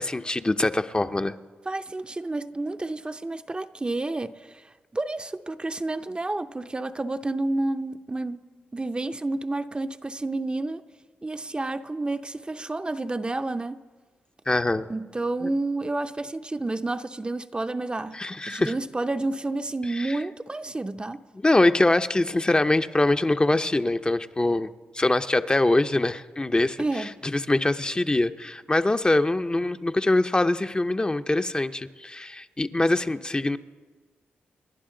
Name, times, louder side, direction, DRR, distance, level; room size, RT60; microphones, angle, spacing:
voice 1, 0.0-1.3 14.5-14.9 15.4-15.5 18.1-18.7 19.8-20.2 21.4-24.7 24.9-33.6, left 2 dB, 20° left, 0.6 m, -23 dB
voice 2, 1.7-8.4 8.7-10.8 11.2-13.8 14.9-18.2 18.5-21.2 26.8-27.1, right 2 dB, 25° right, 0.6 m, -30 dB
29.0 x 11.0 x 3.8 m
cardioid pair, 60°, 4 cm